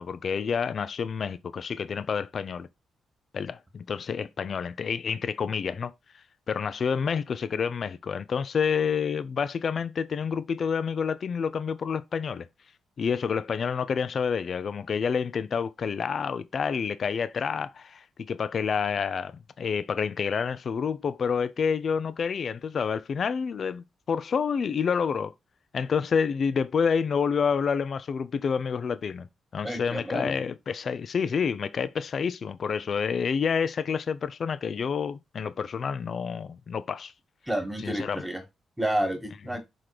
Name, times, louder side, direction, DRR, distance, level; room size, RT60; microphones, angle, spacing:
voice 1, 0.0-2.7 3.3-5.9 6.5-12.5 13.0-25.3 25.7-29.3 29.5-37.1 37.8-38.2, left 6 dB, 50° left, 0.5 m, -28 dB
voice 2, 29.6-30.4 37.5-38.4 38.8-39.6, right 1 dB, 5° right, 1.7 m, -30 dB
6.0 x 3.8 x 4.9 m
cardioid pair, 125°, 0 cm